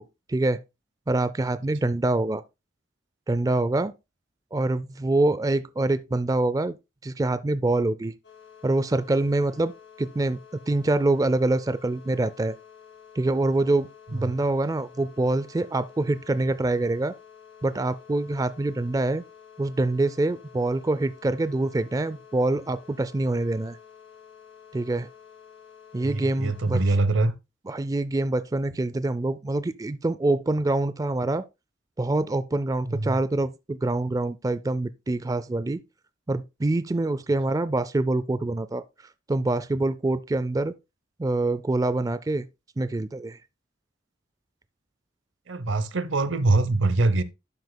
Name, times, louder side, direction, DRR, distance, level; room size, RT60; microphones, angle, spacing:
voice 1, 0.3-0.6 1.1-2.4 3.3-3.9 4.5-6.8 7.0-8.1 8.6-9.7 10.0-10.4 10.7-12.5 13.2-17.1 17.6-19.2 19.6-23.8 24.7-25.1 25.9-26.8 27.7-31.4 32.0-35.8 36.3-38.8 39.3-40.7 41.2-42.5 42.8-43.4, right 2 dB, 20° right, 0.3 m, -25 dB
sound 1, 8.2-26.9, left 7 dB, 75° left, 3.1 m, -50 dB
voice 2, 26.0-27.3 32.8-33.2 45.5-47.2, right 2 dB, 80° right, 0.7 m, -23 dB
12.0 x 6.4 x 2.2 m
head